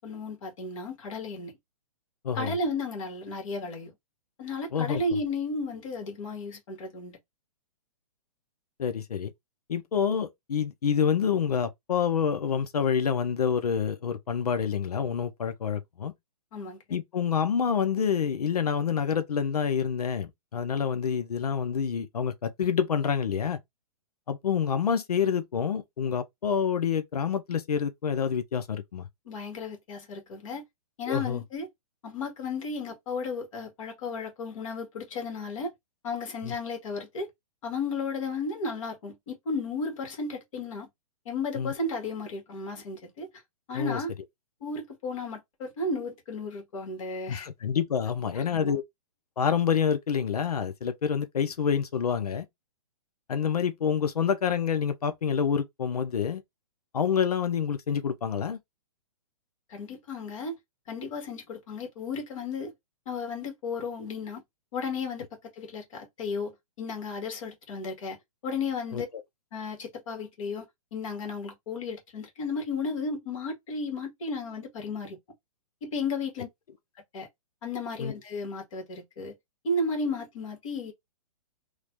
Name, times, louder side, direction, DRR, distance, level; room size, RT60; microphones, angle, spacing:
voice 1, 0.0-1.5 2.3-3.9 4.4-7.2 16.5-16.8 29.2-30.6 31.0-31.7 32.0-35.7 36.0-37.3 37.6-40.9 41.2-43.3 43.7-44.1 44.6-47.5 48.3-48.8 59.7-60.6 60.9-62.7 63.0-64.4 64.7-65.3 65.5-69.0 69.5-75.2 75.8-76.5 77.1-77.3 77.6-79.3 79.6-80.9, left 3 dB, 60° left, 1.8 m, -34 dB
voice 2, 4.7-5.0 8.8-9.3 9.7-16.1 16.9-23.6 24.3-29.1 31.1-31.4 36.4-36.5 41.6-41.7 43.7-44.0 47.3-48.8 49.4-52.5 53.3-56.4 56.9-58.6 68.9-69.0 78.0-78.1, left 7 dB, 90° left, 0.7 m, -27 dB
3.2 x 2.3 x 2.9 m
hypercardioid pair, 140°, 19 cm